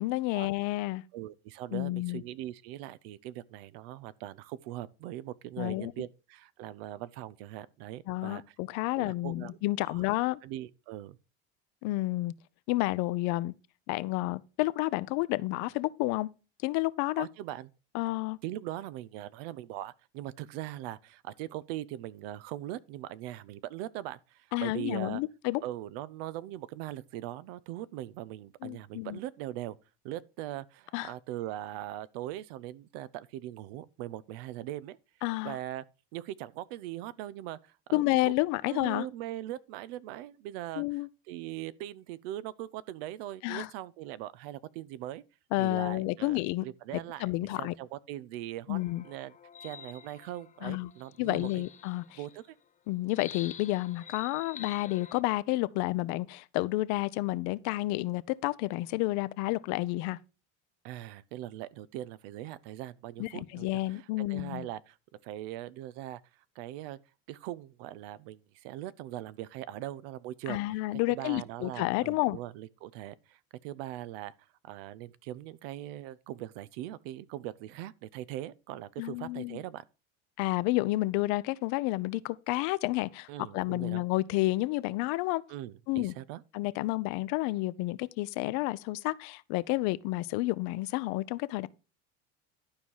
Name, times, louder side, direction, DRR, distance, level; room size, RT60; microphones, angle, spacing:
voice 1, 0.0-1.0 1.7-2.2 5.6-5.9 8.1-10.4 11.8-12.3 12.7-13.5 13.9-16.3 16.6-17.3 17.9-18.4 24.5-25.6 28.6-29.2 30.9-31.1 35.2-35.6 37.9-39.1 40.8-41.1 43.4-43.7 45.5-46.6 46.9-47.7 48.7-49.0 50.6-50.9 51.2-52.2 52.9-60.2 63.2-64.7 70.5-72.4 79.0-79.6 80.4-83.3 83.5-85.4 85.9-86.1 86.5-91.7, left 19 dB, 65° left, 0.7 m, -30 dB
voice 2, 1.1-8.6 8.9-10.1 10.4-11.2 17.2-17.7 18.4-25.2 25.6-29.8 30.0-35.0 35.4-35.8 36.1-38.3 38.7-45.2 45.6-48.8 49.0-49.3 49.6-51.5 52.2-52.6 60.8-66.2 66.6-67.0 67.3-74.3 74.6-79.8 83.3-84.0 85.5-86.4, right 14 dB, 75° right, 0.8 m, -41 dB
sound 1, 48.7-52.5 53.1-55.2, left 8 dB, 25° left, 0.6 m, -49 dB
11.5 x 4.8 x 5.5 m
supercardioid pair, 100°, 31 cm